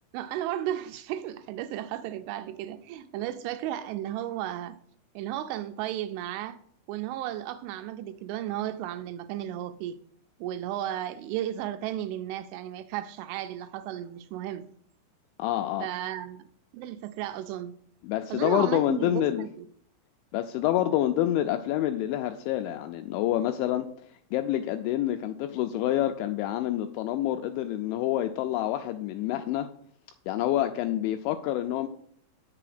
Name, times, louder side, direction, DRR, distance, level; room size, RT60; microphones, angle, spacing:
voice 1, 0.1-4.8 5.2-6.6 6.9-10.0 10.4-14.7 15.8-16.5 16.7-17.8 18.3-19.7, right 12 dB, 85° right, 2.8 m, -34 dB
voice 2, 15.4-15.9 18.0-19.5 20.3-23.9 24.3-29.7 30.3-31.9, left 13 dB, 85° left, 2.6 m, -27 dB
8.6 x 6.8 x 4.9 m
omnidirectional pair, 5.7 m